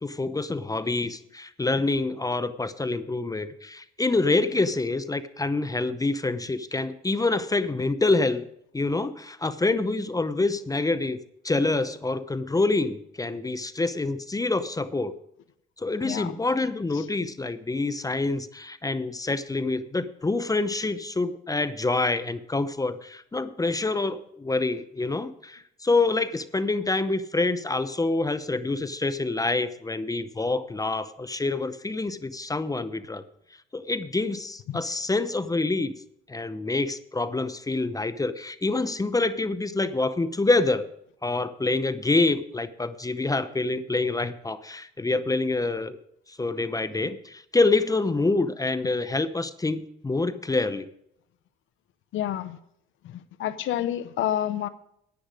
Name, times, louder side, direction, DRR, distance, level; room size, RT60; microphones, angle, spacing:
voice 1, 0.0-8.4 8.7-11.2 11.4-15.1 15.8-33.2 33.7-35.9 36.3-40.9 41.2-46.0 46.3-50.9, left 3 dB, 15° left, 13 dB, 0.7 m, -26 dB
voice 2, 16.0-16.3 16.9-17.1 34.7-34.8 52.1-52.6 53.0-54.7, left 11 dB, 75° left, 12 dB, 0.7 m, -29 dB
10.5 x 9.8 x 5.0 m, 0.74 s
cardioid pair, 90°, 20 cm